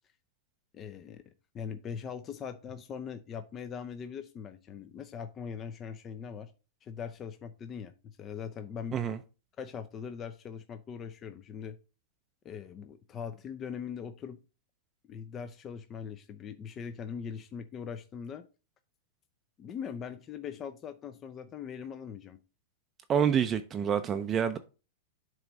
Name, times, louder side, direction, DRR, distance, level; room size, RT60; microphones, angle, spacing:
voice 1, 0.7-1.2 1.5-6.5 6.8-9.0 9.6-11.8 12.4-14.4 15.0-18.4 19.6-22.4, left 7 dB, 30° left, 0.5 m, -41 dB
voice 2, 23.1-24.6, right 8 dB, 25° right, 0.4 m, -27 dB
7.6 x 3.1 x 5.2 m
hypercardioid pair, 125°, 0 cm